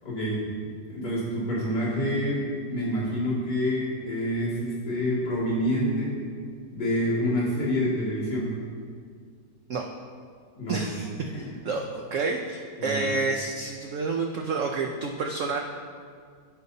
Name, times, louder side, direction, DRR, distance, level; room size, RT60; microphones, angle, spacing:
voice 1, 0.0-0.4 0.9-6.2 6.7-8.5 10.6-10.8 11.3-11.4 12.8-13.0, equal, 65° left, -9 dB, 3.0 m, -27 dB
voice 2, 10.7-11.1 11.4-15.6, right 3 dB, 80° right, 2 dB, 0.6 m, -29 dB
15.0 x 5.3 x 2.7 m, 2.1 s
omnidirectional pair, 1.9 m